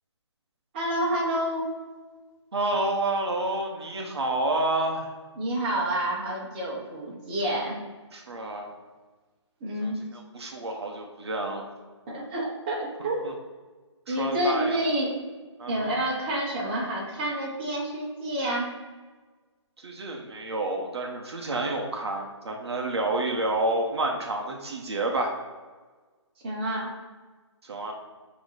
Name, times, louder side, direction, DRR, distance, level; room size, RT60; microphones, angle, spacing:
voice 1, 0.7-1.7 5.4-7.8 9.6-10.0 12.1-13.3 14.1-15.1 15.7-18.7 26.4-26.9, right 1 dB, 20° right, -5 dB, 1.2 m, -28 dB
voice 2, 2.5-5.1 8.1-8.7 9.8-11.7 13.2-13.3 14.1-14.8 15.6-16.0 19.8-25.3 27.6-27.9, right 2 dB, 60° right, 1 dB, 1.0 m, -29 dB
6.4 x 3.1 x 4.8 m, 1.4 s
hypercardioid pair, 170°, 16 cm